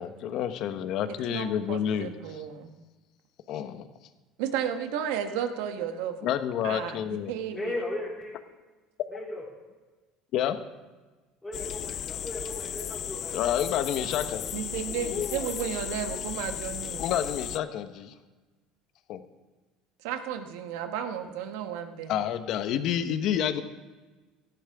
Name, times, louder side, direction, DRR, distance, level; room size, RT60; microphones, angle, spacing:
voice 1, 0.0-2.4 3.5-3.9 6.2-7.3 10.3-10.6 13.3-14.6 17.0-18.1 19.1-19.2 22.1-23.6, left 10 dB, 60° left, 9 dB, 1.1 m, -29 dB
voice 2, 1.3-2.8 4.4-6.4 6.6-7.0 7.3-7.8 14.0-17.1 20.0-22.1, right 9 dB, 85° right, 7 dB, 1.3 m, -33 dB
voice 3, 7.5-8.4 9.1-9.4 11.4-13.4, left 1 dB, 10° left, -9 dB, 3.2 m, -36 dB
sound 1, 11.5-17.6, left 9 dB, 40° left, 0.4 m, -35 dB
17.5 x 13.0 x 3.6 m, 1.3 s
cardioid pair, 125°, 0 cm